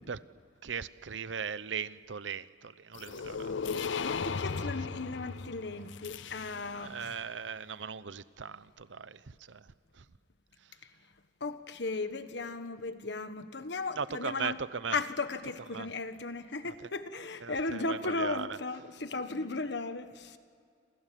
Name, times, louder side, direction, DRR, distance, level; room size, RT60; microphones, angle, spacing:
voice 1, 0.6-4.0 6.8-9.2 9.5-9.7 10.0-10.1 14.0-15.0 15.7-15.9 17.4-18.6, right 6 dB, 80° right, 0.8 m, -38 dB
sound 1, 2.9-7.0, left 5 dB, 85° left, 0.6 m, -36 dB
voice 2, 4.0-7.2 11.4-14.6 14.9-20.4, left 3 dB, 65° left, 1.4 m, -36 dB
28.0 x 27.5 x 7.6 m
head